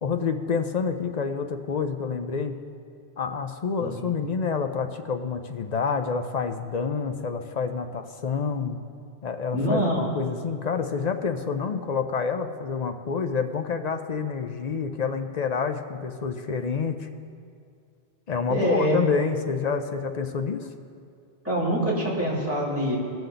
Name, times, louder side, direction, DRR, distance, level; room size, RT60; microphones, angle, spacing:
voice 1, 0.0-2.5 3.2-8.8 9.2-17.1 18.3-20.7, left 5 dB, 50° left, 7 dB, 0.6 m, -28 dB
voice 2, 9.5-10.1 18.5-19.0 21.4-23.0, equal, 10° right, -7 dB, 2.9 m, -24 dB
18.0 x 6.9 x 3.9 m, 2.3 s
omnidirectional pair, 1.1 m